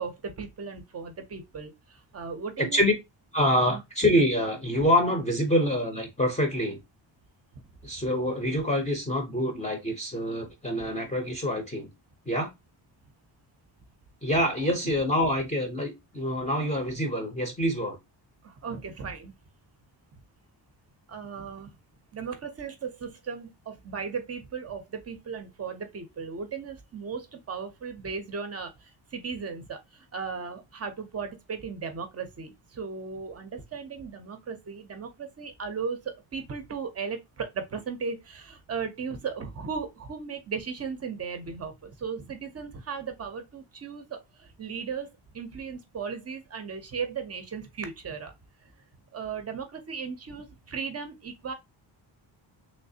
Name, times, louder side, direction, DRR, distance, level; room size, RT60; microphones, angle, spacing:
voice 1, 0.0-2.8 3.7-3.8 18.4-19.4 21.1-21.7 22.1-48.3 49.1-51.5, right 5 dB, 35° right, 0.5 m, -36 dB
voice 2, 2.6-2.9 3.3-6.8 7.8-11.9 12.3-12.5 14.2-18.0, equal, 15° left, 0.6 m, -26 dB
3.2 x 3.2 x 2.7 m
wide cardioid pair, 175°, 44 cm